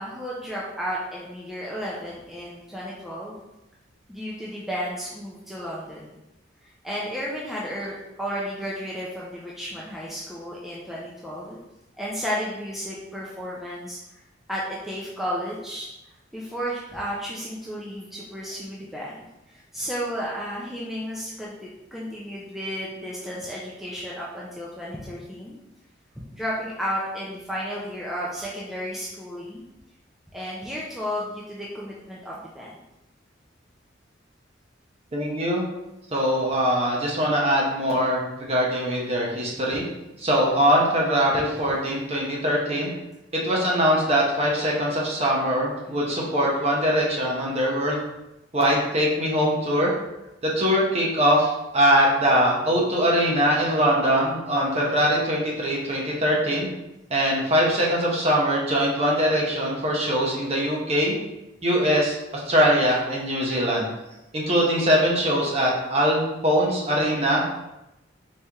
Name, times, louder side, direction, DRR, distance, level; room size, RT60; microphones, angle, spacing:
voice 1, 0.0-3.4 4.1-6.2 6.6-11.6 12.0-14.2 14.5-15.9 16.3-25.6 26.3-29.7 30.3-32.7, equal, ahead, -6 dB, 0.5 m, -33 dB
voice 2, 35.1-35.6 36.1-39.8 40.2-42.9 43.3-48.0 48.5-49.9 50.4-56.7 57.1-61.1 61.6-63.9 64.3-67.6, equal, 35° right, -3 dB, 1.0 m, -22 dB
4.3 x 3.3 x 3.5 m, 0.92 s
head